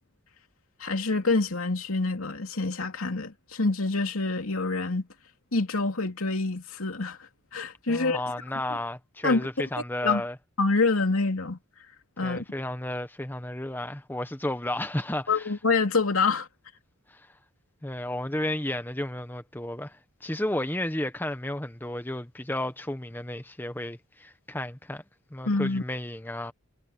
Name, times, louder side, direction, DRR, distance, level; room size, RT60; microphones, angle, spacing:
voice 1, 0.8-5.1 5.5-7.2 7.5-8.2 9.2-9.6 10.0-10.2 10.6-11.6 12.2-12.4 15.3-16.5 25.5-25.8, left 3 dB, 90° left, 2.9 m, -26 dB
voice 2, 7.9-10.4 12.2-15.5 17.1-17.3 17.8-25.0 25.3-26.5, left 1 dB, 10° left, 1.0 m, -33 dB
head